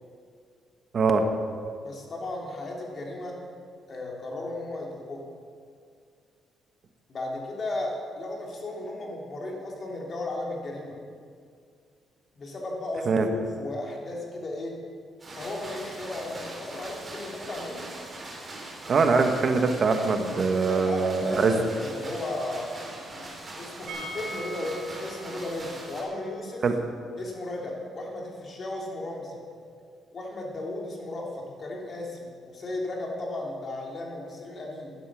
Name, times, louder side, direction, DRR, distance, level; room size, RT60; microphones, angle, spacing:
voice 1, 0.9-1.3 13.1-13.3 18.9-21.6 26.6-26.7, right 4 dB, 50° right, 6 dB, 1.2 m, -23 dB
voice 2, 1.8-3.4 3.9-5.3 7.1-11.0 12.3-14.8 15.3-17.9 20.3-22.8 23.6-26.6 27.2-29.4 30.1-34.9, left 2 dB, 45° left, -1 dB, 2.9 m, -35 dB
sound 1, 15.2-26.0, right 2 dB, 30° right, 3.8 m, -41 dB
sound 2, 23.9-29.6 29.9-30.0 30.3-30.4, right 1 dB, 80° right, 2.3 m, -43 dB
11.0 x 11.0 x 6.2 m, 2.2 s
cardioid pair, 90°, 0 cm